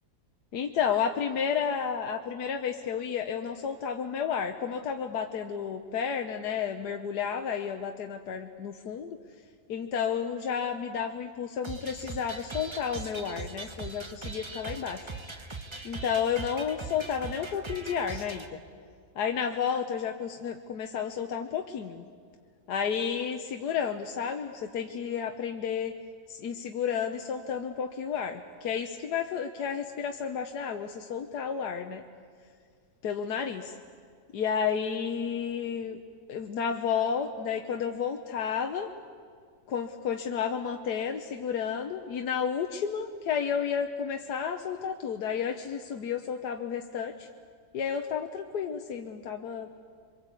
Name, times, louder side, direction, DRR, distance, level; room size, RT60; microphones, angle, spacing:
voice 1, 0.5-9.2 9.7-15.1 15.8-18.6 19.2-22.0 22.7-25.9 26.3-32.0 33.0-33.7 34.3-36.0 36.3-38.9 39.7-47.3 47.7-49.7, left 7 dB, 85° left, 5 dB, 1.5 m, -31 dB
sound 1, 11.6-18.5, right 3 dB, 20° right, 1.1 m, -40 dB
27.5 x 24.0 x 8.3 m, 2.1 s
omnidirectional pair, 1.7 m